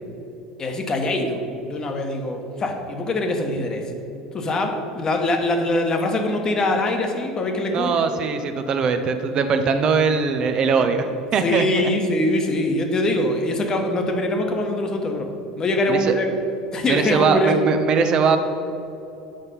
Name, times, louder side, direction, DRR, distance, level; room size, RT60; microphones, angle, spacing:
voice 1, 0.6-3.8 4.3-7.9 11.4-15.3 15.6-16.3 16.7-17.5, left 1 dB, 30° left, 4 dB, 1.1 m, -23 dB
voice 2, 7.7-11.9 15.9-16.1 16.9-18.4, right 5 dB, 40° right, 7 dB, 0.6 m, -21 dB
7.8 x 5.4 x 5.4 m, 2.9 s
figure-of-eight pair, 70°, 2 cm